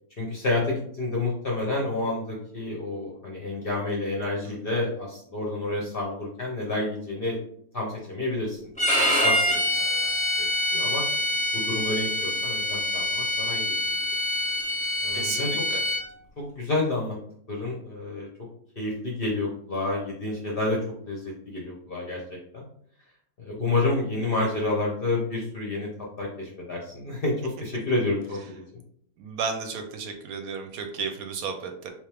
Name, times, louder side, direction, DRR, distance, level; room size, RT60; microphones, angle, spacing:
voice 1, 0.2-7.4 7.7-8.6 8.9-10.1 10.4-11.0 11.5-13.9 15.0-15.5 16.4-17.2 17.5-18.3 18.8-22.6 23.5-25.9 26.2-28.4, left 2 dB, 50° left, -2 dB, 0.7 m, -29 dB
voice 2, 4.4-4.8 15.1-15.8 29.2-31.9, right 5 dB, 70° right, 5 dB, 1.0 m, -33 dB
Bowed string instrument, 8.8-16.0, left 1 dB, 5° left, 1.0 m, -25 dB
3.4 x 3.0 x 3.3 m, 0.66 s
omnidirectional pair, 1.7 m